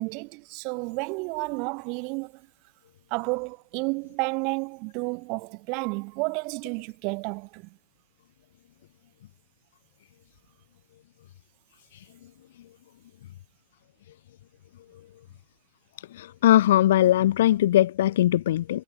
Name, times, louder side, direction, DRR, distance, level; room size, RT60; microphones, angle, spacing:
voice 1, 0.0-2.5 3.1-7.8, right 32 dB, 55° right, 6.4 m, -31 dB
voice 2, 16.1-18.8, left 13 dB, 80° left, 2.0 m, -20 dB
supercardioid pair, 120°, 0 cm